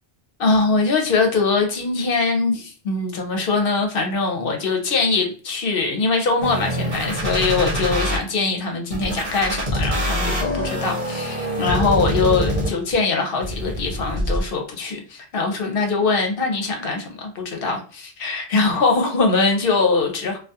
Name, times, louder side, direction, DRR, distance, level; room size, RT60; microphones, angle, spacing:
voice 1, 0.4-20.4, left 4 dB, 65° left, 0.8 m, -22 dB
sound 1, 6.4-8.2 8.9-12.9 13.4-14.4, equal, 40° right, 0.8 m, -24 dB
2.3 x 2.2 x 2.6 m
omnidirectional pair, 1.0 m